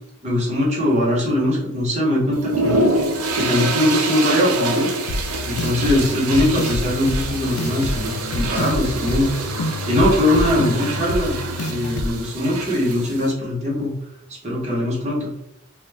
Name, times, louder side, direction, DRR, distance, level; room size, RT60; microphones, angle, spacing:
voice 1, 0.2-2.8 3.3-4.9 5.4-9.3 9.9-11.3 11.6-13.9 14.4-15.3, left 1 dB, 30° right, -5 dB, 0.9 m, -21 dB
sound 1, 2.3-13.3, right 2 dB, 75° right, 0.4 m, -26 dB
sound 2, 5.1-12.1, left 2 dB, 85° left, 0.3 m, -27 dB
2.2 x 2.2 x 3.2 m, 0.81 s
head